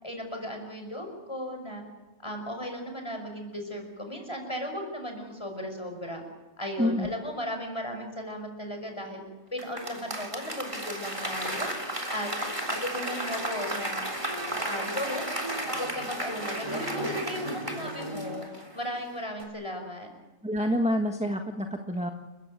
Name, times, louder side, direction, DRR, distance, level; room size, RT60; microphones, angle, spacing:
voice 1, 0.0-1.8 2.2-6.2 6.6-9.2 9.5-11.7 12.1-12.3 12.7-14.1 14.6-15.3 15.6-20.1, equal, 25° left, 4 dB, 5.8 m, -36 dB
Applause / Crowd, 9.6-19.0 19.4-19.5, right 1 dB, 25° right, 3.6 m, -33 dB
voice 2, 20.4-22.1, equal, 5° right, 4 dB, 1.4 m, -27 dB
29.5 x 15.0 x 9.2 m, 1.1 s
omnidirectional pair, 1.2 m